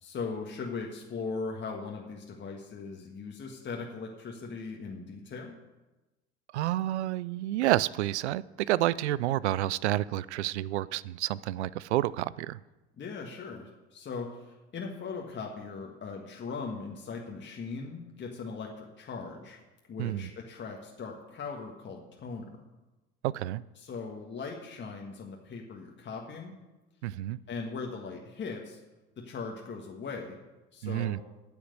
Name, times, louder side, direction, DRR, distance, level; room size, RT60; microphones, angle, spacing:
voice 1, 0.0-5.5 13.0-19.6 19.9-22.6 23.8-26.5 27.5-28.8 29.2-30.4 30.7-31.2, left 4 dB, 35° left, 0 dB, 1.7 m, -39 dB
voice 2, 6.5-12.6 20.0-20.3 23.2-23.6 27.0-27.4 30.8-31.2, right 15 dB, 85° right, 20 dB, 0.5 m, -29 dB
9.5 x 7.1 x 8.1 m, 1.1 s
hypercardioid pair, 80°, 33 cm